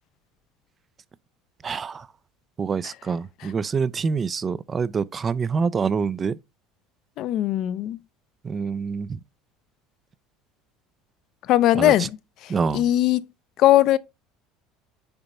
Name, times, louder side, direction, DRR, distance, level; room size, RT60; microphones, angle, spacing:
voice 1, 1.6-2.1 2.6-6.4 8.4-9.2 11.7-12.1 12.5-12.9, right 5 dB, 30° right, 0.4 m, -26 dB
voice 2, 7.2-8.0 11.5-12.1 12.7-13.2 13.6-14.0, left 14 dB, 60° left, 0.5 m, -19 dB
6.8 x 2.9 x 5.3 m
supercardioid pair, 100°, 0 cm